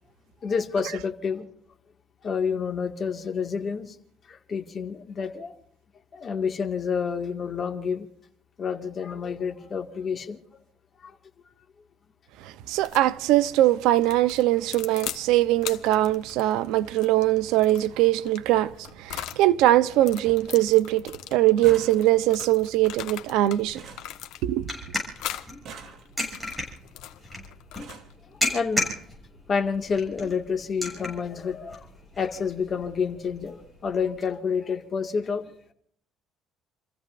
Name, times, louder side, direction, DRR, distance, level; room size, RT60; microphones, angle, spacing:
voice 1, 0.4-1.5 2.2-4.0 4.3-5.6 6.1-8.1 8.6-10.4 11.0-11.1 25.3-25.4 28.5-28.9 29.5-31.9 32.2-35.5, left 6 dB, 35° left, 1.9 m, -29 dB
voice 2, 12.4-18.7 19.0-21.0 21.3-23.8 24.4-24.6, right 15 dB, 90° right, 0.7 m, -21 dB
sound 1, 12.7-13.1 14.0-15.2 15.6-19.4 19.9-23.6 23.9-24.7 25.2-25.5 26.0-28.2, left 12 dB, 85° left, 1.2 m, -40 dB
sound 2, 18.5-18.7 19.2-19.7 19.9-20.0 20.2-20.6 20.9-24.9 25.5-26.4 27.2-27.3 27.6-28.2 29.1-29.2 29.6-29.8 30.0-30.2, right 5 dB, 50° right, 2.9 m, -47 dB
sound 3, 22.9-34.2, left 1 dB, 5° right, 7.1 m, -36 dB
30.0 x 15.0 x 2.6 m
cardioid pair, 155°, 0 cm